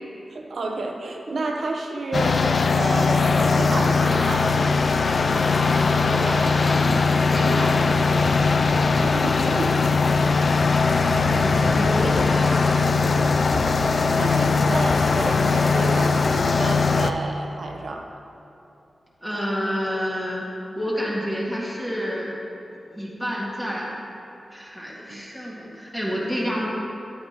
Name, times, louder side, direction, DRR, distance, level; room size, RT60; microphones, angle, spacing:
voice 1, 0.3-4.5 9.0-10.1 14.2-18.1 25.1-25.2, right 2 dB, 70° right, 2 dB, 0.8 m, -30 dB
sound 1, 2.1-17.1, left 4 dB, 60° left, 0.3 m, -20 dB
voice 2, 5.3-6.9 7.3-8.0 10.6-13.4 19.2-20.4 20.7-22.3 22.9-23.8 24.5-26.7, equal, 10° left, -6 dB, 2.1 m, -29 dB
10.5 x 8.6 x 3.0 m, 2.8 s
wide cardioid pair, 75°, 0 cm